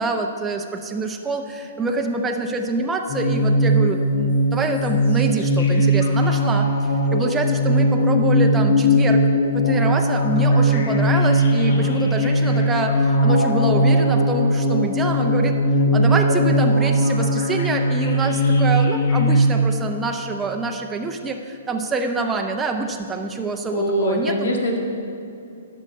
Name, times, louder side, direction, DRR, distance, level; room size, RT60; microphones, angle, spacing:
voice 1, 0.0-6.7 7.1-9.2 9.5-15.6 15.9-24.5, right 3 dB, 10° right, 2 dB, 0.6 m, -26 dB
sound 1, 3.1-19.4, equal, 65° left, 1.3 m, -19 dB
voice 2, 23.7-24.8, left 1 dB, 85° left, 2 dB, 1.7 m, -23 dB
11.5 x 6.4 x 5.3 m, 2.6 s
hypercardioid pair, 150°, 0 cm